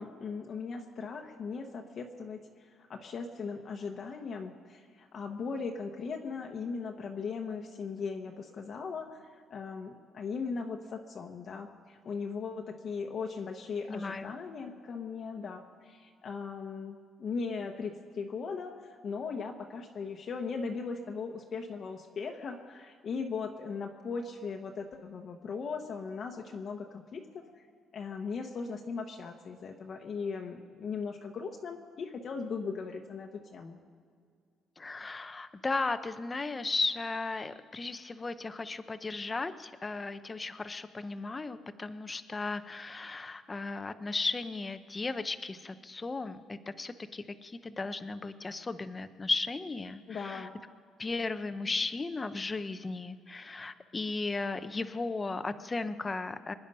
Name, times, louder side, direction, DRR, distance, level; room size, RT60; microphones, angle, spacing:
voice 1, 0.0-27.4 27.9-33.8 50.1-50.5 51.1-51.2, left 5 dB, 40° left, 2 dB, 1.0 m, -38 dB
voice 2, 13.9-14.3 34.8-50.5 51.0-56.5, left 3 dB, 20° left, 11 dB, 0.6 m, -35 dB
25.5 x 10.5 x 5.4 m, 2.1 s
cardioid pair, 150°, 0 cm